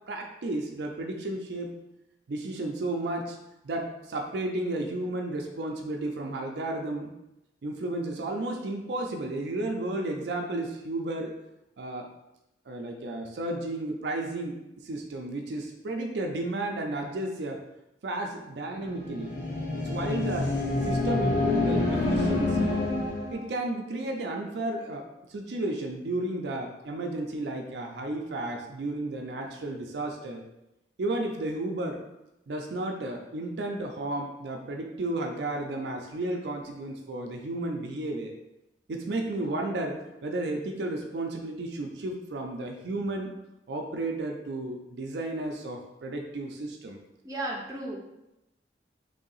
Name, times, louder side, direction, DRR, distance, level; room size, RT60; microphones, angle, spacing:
voice 1, 0.0-1.8 2.3-3.4 3.6-7.1 7.6-11.3 11.8-12.1 12.7-17.6 18.0-19.3 19.8-20.5 20.8-22.8 23.3-30.4 31.0-32.0 32.5-38.3 38.9-43.3 43.7-47.0, right 2 dB, 65° right, 2 dB, 0.4 m, -33 dB
sound 1, 18.8-23.5, left 2 dB, 45° left, 1.1 m, -27 dB
voice 2, 47.2-48.0, right 1 dB, 20° right, -2 dB, 0.6 m, -34 dB
3.3 x 2.7 x 3.9 m, 0.90 s
head